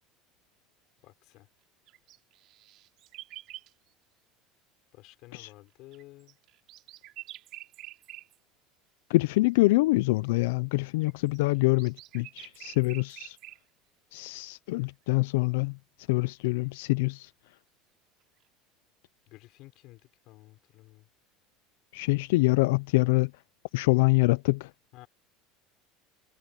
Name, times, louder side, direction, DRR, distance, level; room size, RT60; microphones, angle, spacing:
voice 1, 1.0-1.5 4.9-6.4 19.3-21.1 24.9-25.1, left 18 dB, 50° left, 6.0 m, -52 dB
sound 1, 1.9-3.7 5.9-8.4 9.6-9.7 11.0-13.6, right 15 dB, 45° right, 3.8 m, -47 dB
voice 2, 9.1-13.4 14.1-15.8 16.1-17.3 21.9-23.3 23.7-24.7, left 23 dB, 85° left, 0.4 m, -25 dB
cardioid pair, 165°, 0 cm